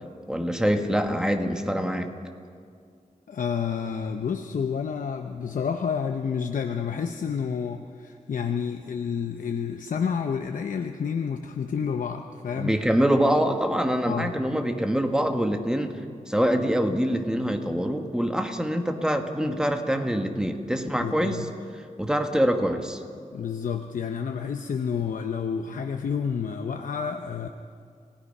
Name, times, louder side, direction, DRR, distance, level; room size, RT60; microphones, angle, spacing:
voice 1, 0.3-2.1 12.6-16.0 16.3-21.5 22.0-23.0, equal, 5° right, 5 dB, 1.5 m, -25 dB
voice 2, 3.3-12.8 14.1-14.4 21.0-21.5 23.3-27.5, left 6 dB, 80° left, 5 dB, 0.8 m, -29 dB
30.0 x 17.0 x 5.5 m, 2.2 s
wide cardioid pair, 140°, 14 cm